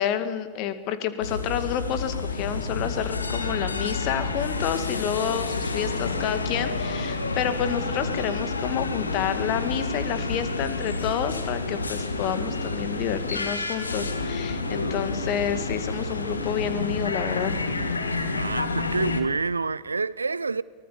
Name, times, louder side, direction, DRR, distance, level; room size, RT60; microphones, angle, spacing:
voice 1, 0.0-17.5, left 9 dB, 40° left, 2.1 m, -29 dB
sound 1, 1.2-19.2, left 3 dB, 75° left, 1.9 m, -29 dB
voice 2, 18.3-20.6, right 4 dB, 75° right, 0.6 m, -28 dB
23.5 x 19.0 x 7.3 m
figure-of-eight pair, 90°, 0 cm